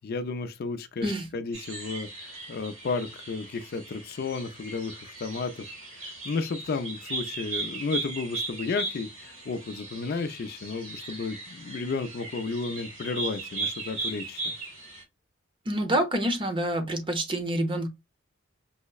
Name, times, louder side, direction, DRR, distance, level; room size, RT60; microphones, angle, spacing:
voice 1, 0.0-5.7 5.9-14.5, left 4 dB, 50° left, 0.4 m, -33 dB
sound 1, 1.5-15.0, right 3 dB, 75° right, 2.3 m, -37 dB
voice 2, 15.7-17.9, right 1 dB, 25° right, 0.7 m, -27 dB
5.4 x 2.0 x 2.3 m
head